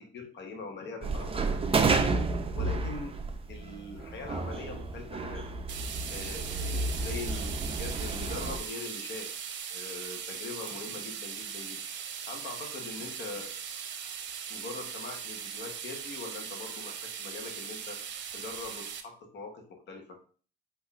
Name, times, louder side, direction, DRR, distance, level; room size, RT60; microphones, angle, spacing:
voice 1, 0.0-2.1 2.5-3.2 3.5-5.5 6.1-9.3 9.7-11.8 12.3-13.6 14.5-18.0 18.3-20.2, left 3 dB, 60° left, 3 dB, 1.2 m, -42 dB
sound 1, 1.0-8.6, right 3 dB, 30° right, 0.6 m, -31 dB
sound 2, 5.7-19.0, right 7 dB, 70° right, 0.7 m, -39 dB
4.2 x 2.9 x 4.1 m, 0.41 s
cardioid pair, 90°, 20 cm